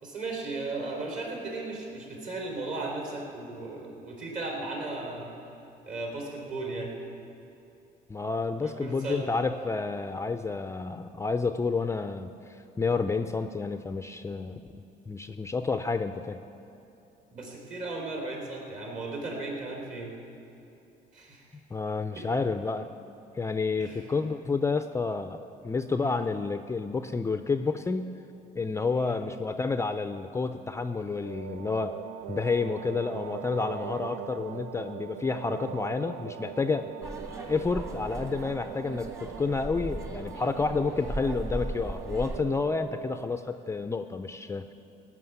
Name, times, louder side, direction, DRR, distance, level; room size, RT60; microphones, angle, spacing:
voice 1, 0.0-5.3 5.9-6.9 8.6-9.3 17.3-20.1 21.1-21.6 22.1-22.2 23.8-24.1 26.0-26.2 28.9-29.2, right 2 dB, 50° right, -1 dB, 3.7 m, -36 dB
voice 2, 8.1-16.4 21.7-22.9 23.3-28.2 28.6-32.0 32.3-36.9 37.5-44.7, left 4 dB, 15° left, 9 dB, 0.4 m, -30 dB
sound 1, 31.2-43.4, right 10 dB, 65° right, 0.5 m, -41 dB
sound 2, 37.0-42.4, right 1 dB, 20° right, 1.4 m, -38 dB
17.0 x 6.1 x 9.3 m, 2.9 s
cardioid pair, 110°, 17 cm